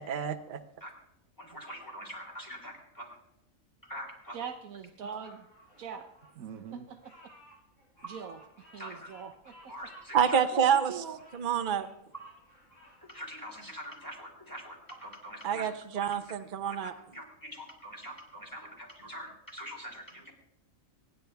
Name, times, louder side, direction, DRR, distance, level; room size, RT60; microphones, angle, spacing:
voice 1, 0.1-0.6 10.1-11.0 11.3-11.9 15.4-16.9, right 8 dB, 40° right, 8 dB, 0.9 m, -28 dB
voice 2, 1.4-3.2 3.8-4.5 8.0-8.1 8.8-9.1 9.7-10.4 13.1-15.7 16.0-16.1 16.6-16.8 17.1-20.3, equal, 15° left, 1 dB, 3.3 m, -44 dB
voice 3, 4.3-5.4 5.8-6.0 6.4-7.0 8.1-8.4 8.7-9.5 10.5-11.2, right 7 dB, 85° right, 4 dB, 1.3 m, -41 dB
Bird vocalization bird call bird song, 5.2-14.2 14.7-15.7, equal, 80° left, 5.5 m, -58 dB
25.5 x 10.5 x 3.5 m, 0.86 s
omnidirectional pair, 1.4 m